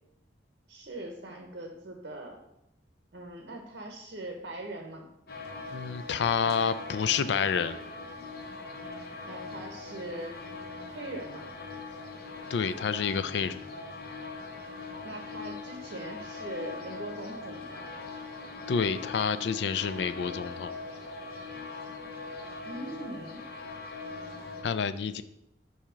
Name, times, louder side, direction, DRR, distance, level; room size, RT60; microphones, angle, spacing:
voice 1, 0.7-2.4 3.1-5.1 9.2-10.3 10.9-11.4 15.0-17.8 22.6-23.4, right 1 dB, 60° right, 1 dB, 0.8 m, -41 dB
sound 1, 5.3-24.6, left 3 dB, 55° left, 0.8 m, -41 dB
voice 2, 5.7-7.8 12.5-13.6 18.7-20.7 24.6-25.2, left 6 dB, 70° left, 13 dB, 0.3 m, -28 dB
7.3 x 2.8 x 5.0 m, 0.82 s
head